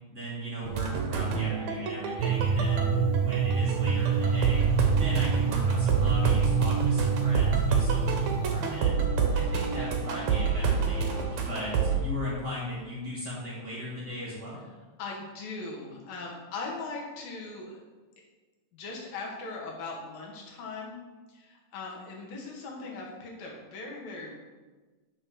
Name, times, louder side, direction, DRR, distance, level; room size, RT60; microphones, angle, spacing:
voice 1, 0.1-4.6 4.9-8.9 9.3-14.7, equal, 35° right, -5 dB, 2.2 m, -38 dB
sound 1, 0.6-11.9, right 5 dB, 65° right, 2.1 m, -28 dB
sound 2, 2.2-8.8, right 5 dB, 85° right, 2.5 m, -27 dB
voice 2, 15.0-17.8 18.7-21.0 21.3-24.4, left 3 dB, 90° left, -2 dB, 3.5 m, -39 dB
6.6 x 6.4 x 6.3 m, 1.3 s
omnidirectional pair, 3.9 m